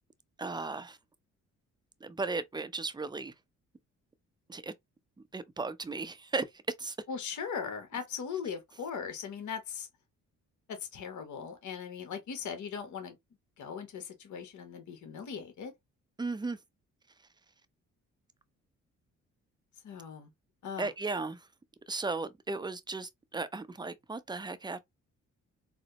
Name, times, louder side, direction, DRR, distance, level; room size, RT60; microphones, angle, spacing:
voice 1, 0.4-1.0 2.0-3.3 4.5-4.7 5.3-6.5 6.8-7.0 16.2-16.6 20.8-21.4 21.9-24.8, right 3 dB, 15° right, 0.5 m, -36 dB
voice 2, 7.1-9.9 10.7-13.2 13.6-15.7 19.8-20.3 20.6-20.9, left 6 dB, 65° left, 1.1 m, -39 dB
4.1 x 2.0 x 2.8 m
supercardioid pair, 65°, 32 cm